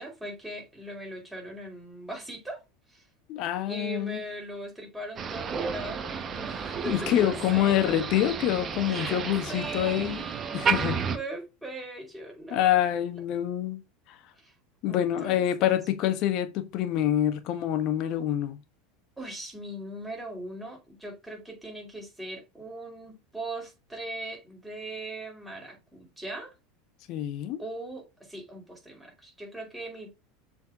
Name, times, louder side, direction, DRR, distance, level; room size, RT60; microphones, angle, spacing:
voice 1, 0.0-2.6 2.9-3.0 3.6-8.1 8.9-9.2 9.5-12.8 14.4-14.5 14.8-15.8 19.2-26.5 27.6-30.1, right 2 dB, 5° right, 4.7 m, -40 dB
voice 2, 3.3-4.2 6.8-10.2 10.5-11.0 12.5-13.8 14.8-18.6 27.1-27.6, left 11 dB, 50° left, 1.3 m, -26 dB
Motor vehicle (road), 5.2-11.2, right 6 dB, 30° right, 1.1 m, -32 dB
7.2 x 4.5 x 3.6 m
figure-of-eight pair, 80°, 0 cm